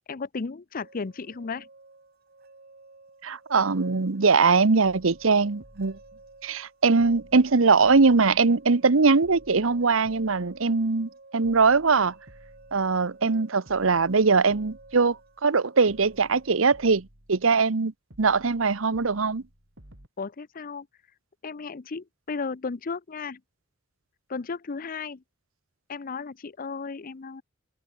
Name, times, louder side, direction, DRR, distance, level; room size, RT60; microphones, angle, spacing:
voice 1, 0.1-1.7 20.2-20.9 21.4-23.4 24.3-25.2 25.9-27.4, left 4 dB, 45° left, 0.6 m, -34 dB
sound 1, 0.7-17.0, right 3 dB, 50° right, 4.0 m, -53 dB
voice 2, 3.2-6.0 6.4-12.1 12.7-17.9 18.2-19.4, right 4 dB, 85° right, 0.9 m, -21 dB
sound 2, 4.8-6.7 7.0-8.9 9.2-11.1 11.4-13.4 13.7-15.6 15.9-17.8 18.1-20.1, equal, 65° right, 4.7 m, -55 dB
head